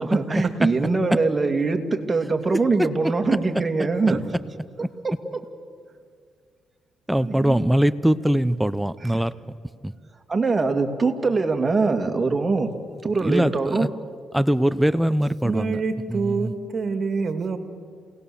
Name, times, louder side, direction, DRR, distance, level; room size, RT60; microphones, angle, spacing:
voice 1, 0.0-4.4 4.8-5.4 7.1-7.7 9.0-9.2 10.3-12.7 13.0-13.9 14.7-14.8, right 3 dB, 25° right, 4 dB, 2.3 m, -23 dB
voice 2, 4.1-4.5 15.4-17.6, right 4 dB, 45° right, 7 dB, 2.4 m, -27 dB
voice 3, 7.1-9.3 13.2-13.9 14.3-15.8, right 1 dB, 5° right, 15 dB, 0.7 m, -21 dB
28.5 x 18.5 x 7.1 m, 2.1 s
cardioid pair, 90°, 0 cm